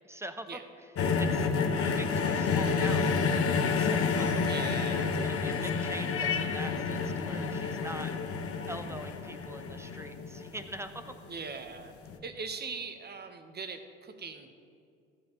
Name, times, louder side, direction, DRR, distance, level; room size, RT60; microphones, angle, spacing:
voice 1, 0.1-0.6 1.2-4.0 4.3-4.4 5.2-8.1 8.7-11.0, right 1 dB, 10° right, 8 dB, 0.7 m, -43 dB
sound 1, 1.0-11.1 12.1-12.2, left 5 dB, 50° left, 1.0 m, -29 dB
voice 2, 4.5-5.1 5.6-5.7 11.3-11.9 12.2-14.5, right 5 dB, 35° right, 7 dB, 1.1 m, -40 dB
14.5 x 7.7 x 3.1 m, 2.3 s
hypercardioid pair, 60°, 30 cm